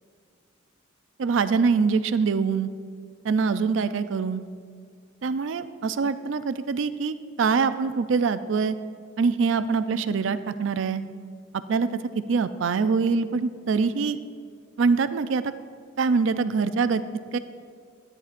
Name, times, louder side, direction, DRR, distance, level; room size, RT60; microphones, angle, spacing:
voice 1, 1.2-2.7 3.2-4.5 5.2-8.8 9.2-11.0 11.7-11.9 12.3-14.2 14.8-15.5 16.0-17.0 17.3-17.4, right 5 dB, 70° right, 12 dB, 0.4 m, -24 dB
13.0 x 9.7 x 2.5 m, 2.1 s
head